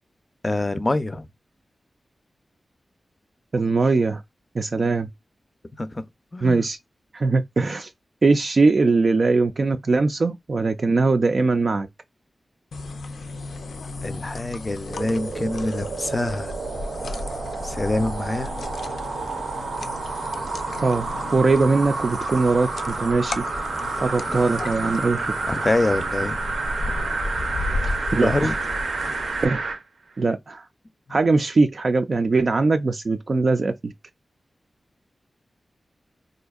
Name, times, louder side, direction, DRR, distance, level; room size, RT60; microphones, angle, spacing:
voice 1, 0.4-1.3 5.8-6.0 6.3-6.7 14.0-16.5 17.6-18.5 25.5-26.6 28.2-28.6 31.1-31.2, left 2 dB, 25° left, 0.5 m, -25 dB
voice 2, 3.5-4.2 4.5-5.1 6.4-6.8 7.1-7.9 8.2-11.9 20.8-21.1 21.3-23.4 24.0-25.3 28.1-28.5 29.4-29.6 30.2-30.7 31.1-33.9, right 3 dB, 50° right, 0.3 m, -21 dB
sound 1, 12.7-29.5, left 3 dB, 90° left, 0.5 m, -34 dB
sound 2, 14.8-29.8 30.3-30.4, right 3 dB, 90° right, 0.6 m, -30 dB
4.2 x 2.6 x 2.3 m
wide cardioid pair, 120°, 0 cm